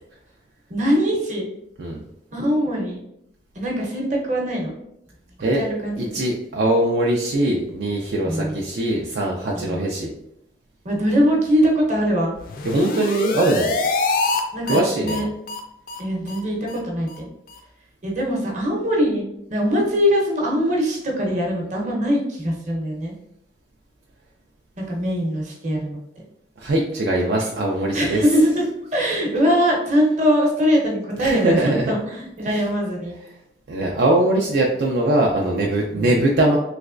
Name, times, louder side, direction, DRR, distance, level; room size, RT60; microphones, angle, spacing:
voice 1, 0.7-1.5 2.3-3.0 3.5-4.7 5.4-6.1 8.3-8.6 9.5-9.8 10.8-12.4 14.5-15.3 16.0-17.3 18.0-23.1 24.8-26.0 27.9-28.6 28.9-33.2 35.9-36.1, equal, 40° right, -2 dB, 0.8 m, -22 dB
voice 2, 6.0-10.1 12.6-13.8 14.7-15.2 26.6-28.2 31.2-31.9 32.5-32.6 33.7-36.6, right 1 dB, 65° right, -1 dB, 0.4 m, -21 dB
sound 1, 12.4-14.4 14.7-14.8 15.1-15.2 15.5-15.6 15.9-16.0 16.3-16.4 16.7-16.8 17.1-17.2 17.5-17.6, left 3 dB, 50° left, 0.4 m, -24 dB
3.2 x 3.0 x 2.4 m, 0.80 s
head